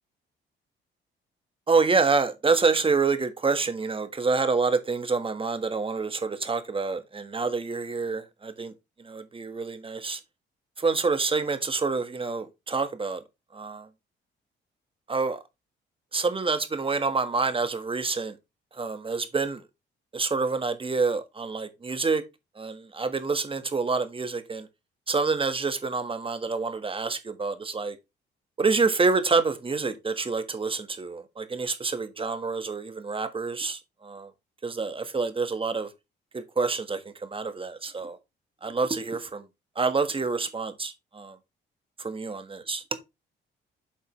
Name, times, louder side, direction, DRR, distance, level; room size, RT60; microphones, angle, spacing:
voice 1, 1.7-8.7 9.0-10.2 10.8-13.2 13.5-13.9 15.1-15.4 16.1-18.3 18.8-19.6 20.1-22.2 22.6-24.7 25.1-27.9 28.6-34.3 34.6-35.9 36.3-38.2 38.6-39.4 39.8-41.3 42.0-42.4 42.7-42.8, right 4 dB, 25° right, 1.5 m, -27 dB
8.5 x 5.5 x 3.2 m
cardioid pair, 90°, 20 cm